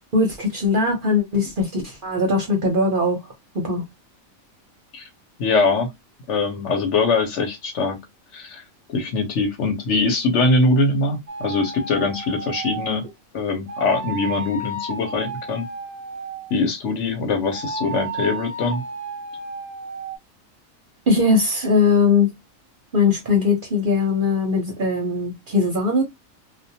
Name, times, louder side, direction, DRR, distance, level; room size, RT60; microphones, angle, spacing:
voice 1, 0.1-3.2 3.5-3.8 21.1-22.3 22.9-26.0, left 3 dB, 50° right, 0.7 m, -20 dB
voice 2, 5.4-5.9 6.3-8.0 8.3-8.6 8.9-13.0 13.3-15.6 16.5-18.8, left 3 dB, 65° left, 1.0 m, -22 dB
sound 1, 11.3-13.0 13.7-16.6 17.5-20.2, right 3 dB, 15° right, 0.7 m, -32 dB
2.4 x 2.2 x 2.7 m
omnidirectional pair, 1.4 m